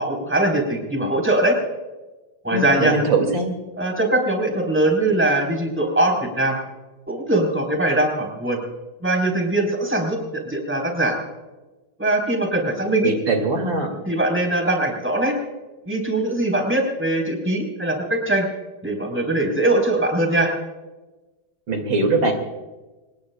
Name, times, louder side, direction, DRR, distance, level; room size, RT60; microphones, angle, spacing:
voice 1, 0.0-1.6 2.4-3.0 3.8-6.6 7.1-8.6 9.0-11.2 12.0-13.1 14.1-15.4 15.9-18.5 18.8-20.5, right 1 dB, 5° right, 1 dB, 4.0 m, -21 dB
voice 2, 2.5-3.5 13.0-13.9 21.7-22.3, right 3 dB, 65° right, 4 dB, 3.0 m, -21 dB
26.0 x 20.5 x 2.3 m, 1.2 s
omnidirectional pair, 2.2 m